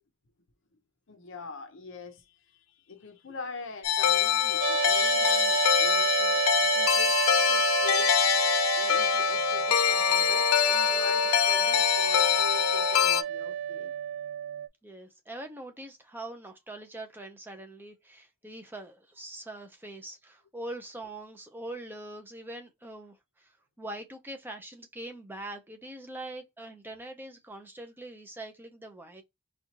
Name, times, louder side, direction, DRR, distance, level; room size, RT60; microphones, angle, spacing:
voice 1, 1.1-6.4 6.8-7.2 7.5-8.2 8.8-13.9, left 4 dB, 60° left, 0.8 m, -44 dB
sound 1, 3.8-13.2, left 10 dB, 85° left, 0.4 m, -24 dB
sound 2, 4.6-14.7, right 11 dB, 70° right, 0.4 m, -30 dB
voice 2, 14.8-23.5 23.8-29.2, right 1 dB, 10° right, 0.6 m, -43 dB
4.2 x 2.3 x 2.9 m
head